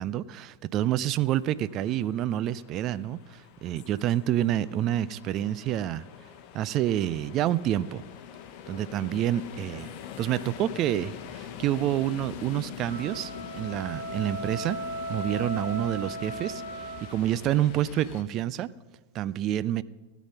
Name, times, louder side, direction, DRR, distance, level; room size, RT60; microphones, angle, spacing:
voice 1, 0.0-6.0 6.5-8.0 8.7-9.9 10.2-14.8 15.1-18.7 19.1-19.8, right 12 dB, 35° right, 17 dB, 0.4 m, -28 dB
sound 1, 1.2-18.2, left 9 dB, 40° left, 1.1 m, -44 dB
sound 2, 12.9-17.4, right 1 dB, 75° right, 2.2 m, -37 dB
17.0 x 8.3 x 5.6 m, 1.2 s
figure-of-eight pair, 90°, 0 cm